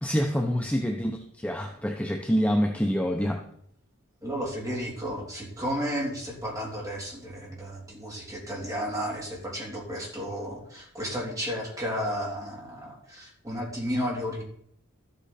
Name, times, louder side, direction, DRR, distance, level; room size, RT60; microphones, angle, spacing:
voice 1, 0.0-3.4, equal, 5° left, 2 dB, 0.7 m, -26 dB
voice 2, 4.2-14.4, equal, 15° right, -3 dB, 3.4 m, -33 dB
13.0 x 8.4 x 4.3 m, 0.68 s
head